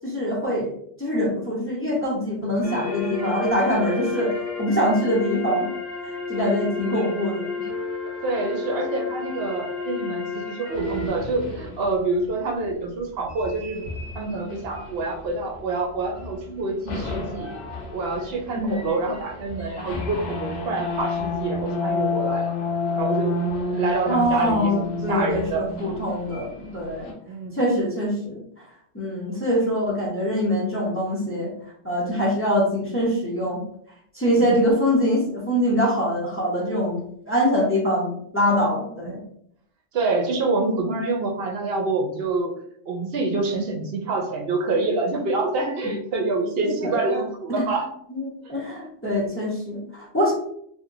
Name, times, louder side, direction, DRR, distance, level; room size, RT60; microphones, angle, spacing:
voice 1, 0.0-0.7 1.0-4.3 4.6-5.7 6.0-7.7 18.5-18.9 24.1-27.1 27.5-28.4 28.9-31.5 31.8-33.6 34.1-39.2 46.8-47.2 47.5-47.6 48.1-50.3, equal, 15° left, -3 dB, 0.5 m, -24 dB
sound 1, 2.6-11.1, left 4 dB, 5° right, 1.0 m, -31 dB
voice 2, 8.2-13.8 14.1-17.5 17.9-22.6 22.9-23.4 23.7-25.7 27.2-27.6 34.4-34.7 39.1-39.2 39.9-42.5 42.9-48.5, right 3 dB, 60° right, 2 dB, 0.7 m, -27 dB
sound 2, 10.7-12.0 13.2-15.7 16.1-16.5 16.8-27.1, left 3 dB, 65° left, 1.0 m, -30 dB
2.8 x 2.6 x 2.5 m, 0.68 s
omnidirectional pair, 1.3 m